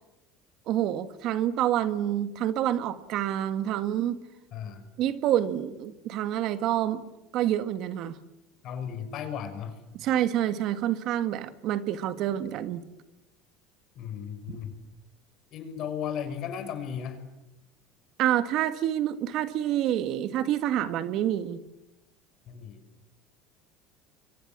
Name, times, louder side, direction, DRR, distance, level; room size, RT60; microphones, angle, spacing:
voice 1, 0.7-4.2 5.0-7.0 7.3-8.2 9.9-12.8 18.2-21.6, right 11 dB, 60° right, 12 dB, 1.7 m, -27 dB
voice 2, 4.5-4.8 8.6-9.8 14.0-14.7 15.5-17.2 22.5-22.8, left 8 dB, 55° left, 9 dB, 5.7 m, -35 dB
29.5 x 24.0 x 7.4 m, 0.94 s
supercardioid pair, 105°, 0 cm